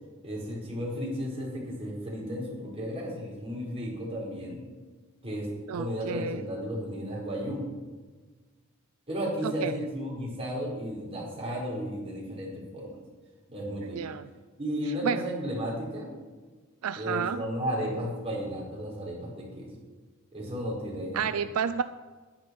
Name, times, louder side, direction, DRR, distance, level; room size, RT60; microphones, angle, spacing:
voice 1, 0.2-4.6 5.2-5.5 5.7-7.6 9.1-13.0 13.5-14.0 14.6-16.1 16.9-19.7 20.3-21.4, equal, 30° right, -4 dB, 4.6 m, -34 dB
voice 2, 5.7-6.4 9.4-9.7 13.9-14.3 15.0-15.2 16.8-17.4 21.1-21.8, right 7 dB, 80° right, 12 dB, 0.4 m, -30 dB
11.0 x 10.0 x 6.1 m, 1.4 s
head